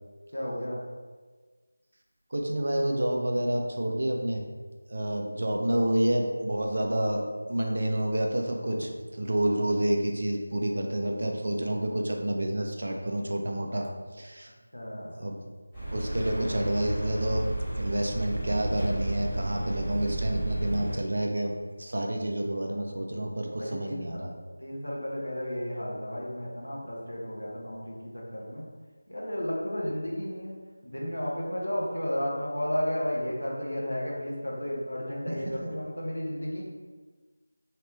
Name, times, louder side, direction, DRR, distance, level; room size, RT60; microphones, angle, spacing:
voice 1, 0.3-0.8 5.3-5.4 14.7-15.2 23.6-24.2 24.6-28.7 29.1-36.6, equal, 75° left, -4 dB, 1.1 m, -33 dB
voice 2, 2.3-4.4 4.9-7.2 7.5-14.5 15.2-15.4 15.9-21.5 21.8-24.3 35.3-35.4, right 1 dB, 50° right, 1 dB, 0.5 m, -29 dB
sound 1, 15.7-21.0, right 1 dB, 5° left, 1.3 m, -32 dB
3.3 x 3.1 x 3.1 m, 1.4 s
figure-of-eight pair, 165°, 0 cm